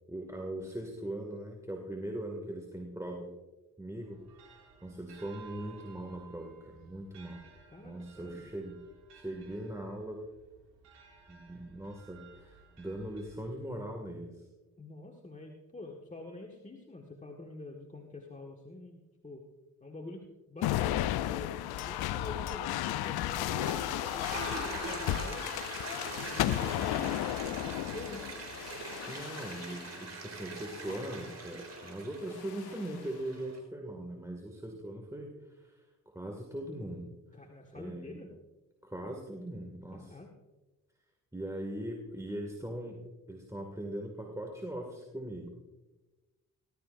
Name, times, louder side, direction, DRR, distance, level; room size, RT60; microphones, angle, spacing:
voice 1, 0.1-3.4 3.8-4.2 4.5-7.4 7.8-8.8 9.1-10.2 11.3-14.5 29.1-37.1 37.7-38.2 38.8-40.2 41.3-45.5, right 1 dB, 10° right, 1 dB, 2.2 m, -40 dB
sound 1, 4.0-13.9, right 5 dB, 85° right, 2.0 m, -57 dB
voice 2, 7.7-8.4 14.8-19.5 19.8-25.5 26.3-28.4 37.3-38.3 39.9-40.3, left 2 dB, 20° left, 1 dB, 1.7 m, -46 dB
sound 2, 20.6-30.0 30.7-31.2 32.3-33.0, left 13 dB, 70° left, 0.6 m, -34 dB
Toilet flush, 23.2-33.6, right 4 dB, 40° right, 4.1 m, -43 dB
18.5 x 12.5 x 2.6 m, 1.2 s
hypercardioid pair, 45°, 40 cm